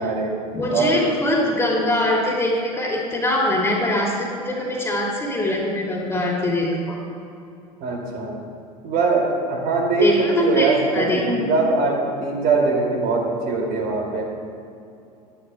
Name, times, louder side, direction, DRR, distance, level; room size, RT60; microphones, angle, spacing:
voice 1, 0.0-0.4 0.7-1.1 7.8-8.4 8.8-14.3, right 3 dB, 45° right, -1 dB, 2.5 m, -22 dB
voice 2, 0.5-7.0 10.0-11.2, left 1 dB, 15° left, -2 dB, 2.6 m, -22 dB
18.0 x 11.5 x 2.3 m, 2.6 s
figure-of-eight pair, 75°, 20 cm